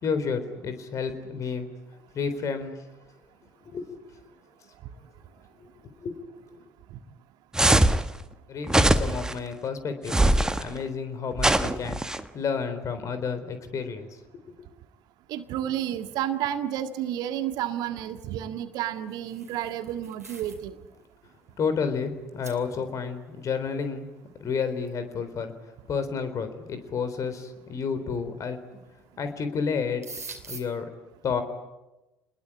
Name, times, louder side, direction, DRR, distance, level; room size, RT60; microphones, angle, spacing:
voice 1, 0.0-1.7 2.1-2.8 3.7-4.0 6.0-6.2 6.5-6.6 8.5-14.1 21.6-24.1 24.4-25.5 25.9-28.6 29.2-30.0 30.5-30.9 31.2-31.4, left 5 dB, 40° left, 10 dB, 3.7 m, -30 dB
sound 1, 7.5-8.0 8.7-9.3 10.1-10.6 11.4-12.2, right 1 dB, 10° right, 1.4 m, -21 dB
voice 2, 15.3-20.7, right 11 dB, 55° right, 9 dB, 1.7 m, -31 dB
sound 2, 18.9-20.7 21.0-21.3 21.9-22.0 22.4-22.6 24.9-25.0 26.0-26.1 26.8-27.2 28.5-28.9 29.2-29.4 29.7-30.6, right 3 dB, 85° right, 2.7 m, -44 dB
29.0 x 21.0 x 8.6 m, 1.0 s
figure-of-eight pair, 60°, 8 cm